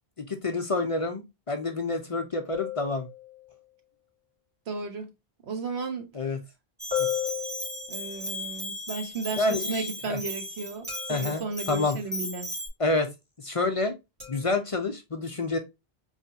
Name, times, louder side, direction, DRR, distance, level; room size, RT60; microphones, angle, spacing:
voice 1, 0.2-3.1 6.1-6.4 7.0-7.1 9.4-10.2 11.1-12.0 12.8-13.1 13.4-14.0 14.3-15.6, left 3 dB, 40° left, 0.6 m, -28 dB
sound 1, 2.5-3.6 6.9-8.3 10.9-11.6 14.2-14.5, left 12 dB, 60° right, 2.3 m, -34 dB
voice 2, 4.7-5.1 5.4-6.1 7.9-12.5, right 4 dB, 90° right, 1.3 m, -34 dB
Bell, 6.8-12.7, equal, 10° right, 0.9 m, -36 dB
4.3 x 3.1 x 2.7 m
omnidirectional pair, 1.0 m